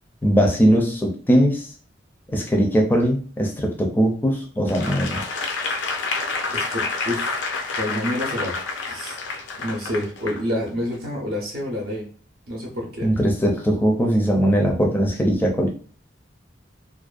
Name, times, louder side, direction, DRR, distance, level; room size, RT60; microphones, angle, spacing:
voice 1, 0.2-1.7 2.3-5.2 13.0-15.7, equal, 10° left, 0 dB, 0.4 m, -20 dB
Applause / Crowd, 4.7-10.4 10.9-11.1, left 3 dB, 85° left, 0.5 m, -28 dB
voice 2, 6.5-7.4 7.7-8.6 8.8-9.2 9.6-12.1 12.5-13.1, left 1 dB, 55° right, -2 dB, 0.6 m, -28 dB
2.4 x 2.1 x 2.4 m, 0.41 s
head